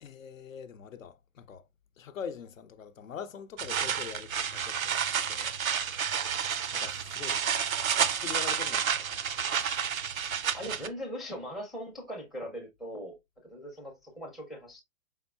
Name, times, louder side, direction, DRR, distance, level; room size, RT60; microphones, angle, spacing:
voice 1, 0.0-1.7 2.0-5.5 6.7-7.6 8.0-9.1, left 7 dB, 75° left, 0.6 m, -43 dB
sound 1, 3.6-10.9, right 7 dB, 85° right, 0.5 m, -30 dB
voice 2, 10.5-13.1 13.4-14.8, equal, ahead, 0.4 m, -40 dB
4.6 x 3.5 x 2.3 m
figure-of-eight pair, 110°, 41 cm